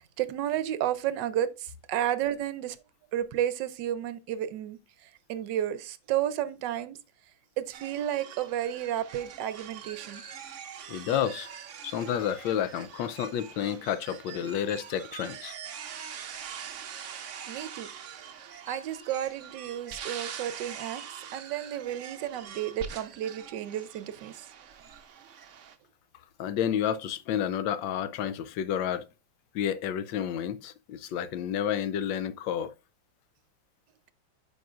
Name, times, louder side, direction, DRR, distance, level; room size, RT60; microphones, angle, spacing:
voice 1, 0.0-2.8 3.1-7.0 7.6-10.2 17.5-17.9 18.7-21.0 21.3-24.5, right 11 dB, 75° right, 1.3 m, -32 dB
sound 1, 7.7-25.8, right 8 dB, 60° right, 0.8 m, -43 dB
voice 2, 10.9-11.5 11.8-15.5 26.4-29.0 29.5-32.7, left 9 dB, 85° left, 1.3 m, -30 dB
8.9 x 5.4 x 2.4 m
omnidirectional pair, 2.0 m